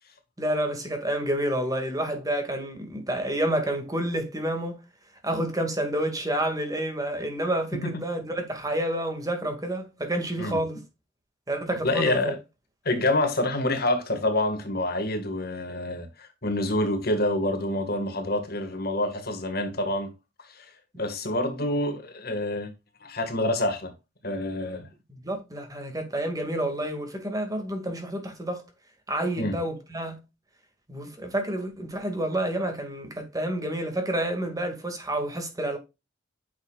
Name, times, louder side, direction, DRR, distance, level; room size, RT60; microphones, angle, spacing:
voice 1, 0.4-4.8 5.2-10.8 11.5-12.3 25.1-28.6 29.1-30.2 30.9-35.8, right 1 dB, 20° right, 2.1 m, -29 dB
voice 2, 11.8-12.4 12.8-20.1 20.9-22.7 23.0-23.9 24.2-24.9 29.4-29.5, left 1 dB, 55° left, 1.7 m, -27 dB
9.5 x 6.3 x 2.4 m
head